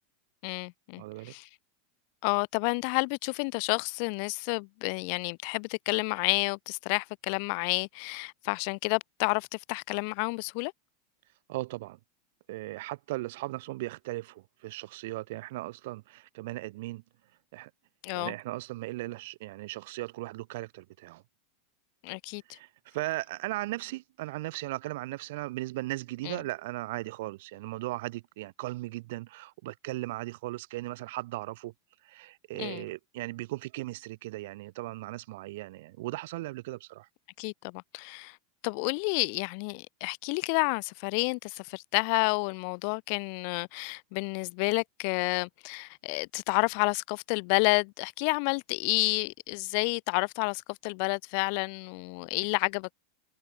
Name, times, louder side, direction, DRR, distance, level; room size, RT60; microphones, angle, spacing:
voice 1, 0.4-1.5 2.2-10.7 18.0-18.3 22.0-22.6 26.2-26.4 32.6-32.8 37.4-38.4 38.6-52.9, left 40 dB or more, 60° left, 0.4 m, -30 dB
voice 2, 1.0-1.3 11.5-12.0 12.5-17.0 17.5-17.7 18.2-21.2 22.5-31.7 32.0-37.1, right 19 dB, 65° right, 0.5 m, -37 dB
hypercardioid pair, 100°, 0 cm